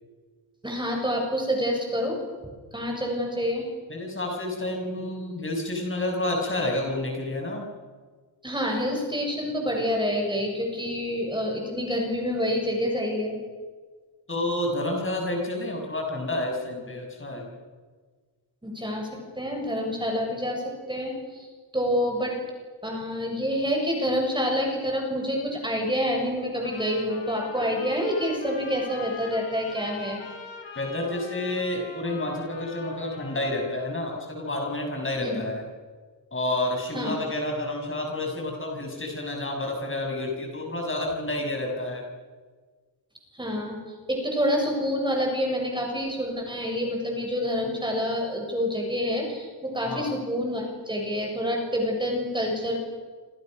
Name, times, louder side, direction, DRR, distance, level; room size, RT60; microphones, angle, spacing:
voice 1, 0.6-2.2 2.7-3.6 8.4-13.4 18.6-19.1 19.4-21.5 21.7-22.4 22.8-30.2 35.2-35.4 36.9-37.2 43.3-43.8 44.1-52.8, equal, 10° right, 0 dB, 7.3 m, -27 dB
voice 2, 3.9-7.6 14.3-17.5 30.7-35.6 36.3-42.0 49.8-50.1, left 1 dB, 25° left, 0 dB, 6.7 m, -29 dB
Trumpet, 26.5-33.9, left 4 dB, 65° left, 6.6 m, -42 dB
29.0 x 27.0 x 6.6 m, 1.4 s
wide cardioid pair, 135°, 47 cm